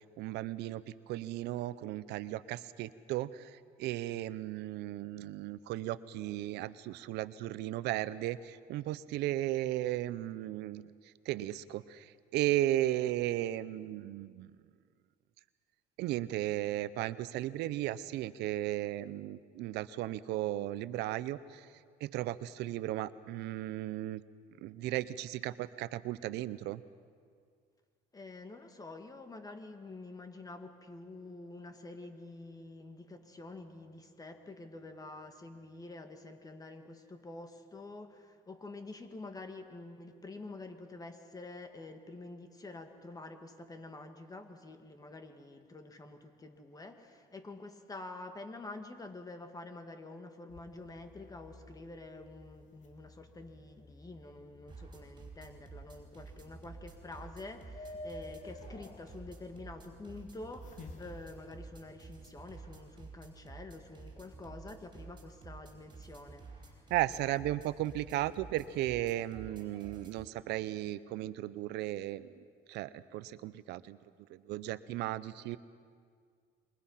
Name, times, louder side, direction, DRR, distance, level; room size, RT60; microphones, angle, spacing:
voice 1, 0.2-3.5 3.8-10.9 11.3-14.5 16.0-21.7 22.0-24.2 24.6-26.8 66.9-72.4 72.7-74.0 74.3-75.6, right 14 dB, 85° right, 16 dB, 0.7 m, -35 dB
voice 2, 28.1-66.9, left 2 dB, 20° left, 6 dB, 2.2 m, -48 dB
sound 1, 50.5-61.8, left 2 dB, 45° left, 2.6 m, -53 dB
sound 2, 54.7-70.3, right 4 dB, 25° right, 4.9 m, -52 dB
27.5 x 23.0 x 5.8 m, 2.1 s
cardioid pair, 110°, 17 cm